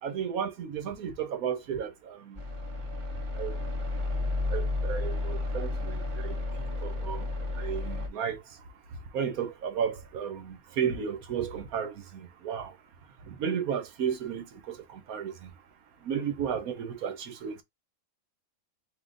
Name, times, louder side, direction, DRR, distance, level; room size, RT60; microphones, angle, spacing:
voice 1, 0.0-2.4 3.4-3.7 4.5-6.4 6.8-7.3 7.5-8.6 9.1-12.7 13.2-15.5 16.0-17.6, right 7 dB, 80° right, 1.4 m, -33 dB
sound 1, 2.3-8.1, left 2 dB, 25° right, 1.0 m, -32 dB
3.7 x 2.9 x 3.9 m
omnidirectional pair, 1.5 m